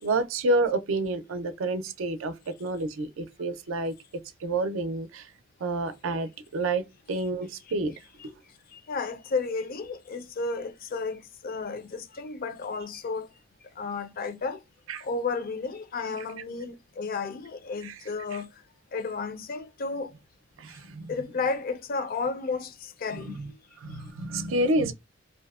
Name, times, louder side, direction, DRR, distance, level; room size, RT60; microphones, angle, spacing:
voice 1, 0.0-2.3 2.6-3.9 4.4-5.3 5.6-7.9 8.2-8.4 14.9-15.0 17.8-17.9 20.6-21.1 23.2-23.5 23.8-24.9, right 2 dB, 85° right, 0.5 m, -29 dB
voice 2, 8.7-13.3 13.8-14.6 15.0-18.6 18.9-20.1 21.1-23.4, left 4 dB, 45° left, 0.4 m, -32 dB
2.6 x 2.0 x 2.3 m
head